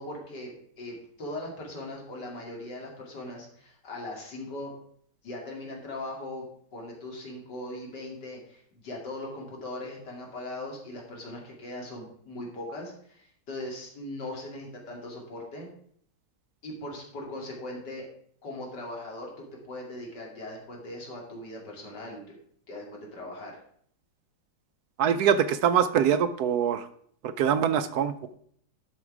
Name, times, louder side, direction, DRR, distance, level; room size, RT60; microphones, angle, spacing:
voice 1, 0.0-4.7 5.2-6.5 6.7-15.7 16.6-18.1 18.4-22.3 22.7-23.6, left 1 dB, 75° left, -1 dB, 3.0 m, -39 dB
voice 2, 25.0-26.9 27.2-28.3, right 8 dB, 70° right, 11 dB, 1.1 m, -24 dB
12.0 x 5.1 x 4.8 m, 0.63 s
omnidirectional pair, 1.9 m